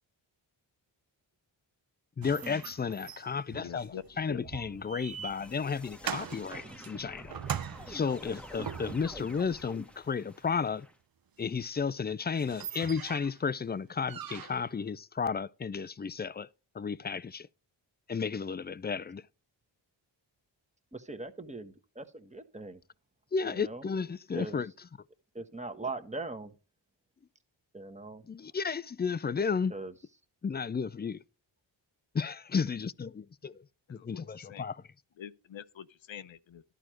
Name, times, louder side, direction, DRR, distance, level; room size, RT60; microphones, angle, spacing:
voice 1, 2.2-7.4 7.9-10.9 11.4-16.5 16.7-17.5 18.1-19.2 23.3-24.7 28.3-29.7 30.4-31.2 32.1-33.6 33.9-34.8, left 5 dB, 20° left, 0.4 m, -33 dB
sound 1, 2.2-9.3 11.6-11.7 12.1-12.2 12.3-13.4 14.0-14.8, right 8 dB, 45° right, 0.7 m, -41 dB
voice 2, 3.5-4.0 4.3-4.4 33.9-34.6 35.2-36.6, left 9 dB, 65° left, 0.8 m, -45 dB
sound 2, 3.9-10.9, equal, ahead, 1.0 m, -49 dB
voice 3, 20.9-22.8 23.4-23.8 24.3-24.6 25.3-26.5 27.7-28.2 29.7-29.9, right 2 dB, 15° right, 1.3 m, -40 dB
11.0 x 4.5 x 6.3 m
cardioid pair, 40°, 49 cm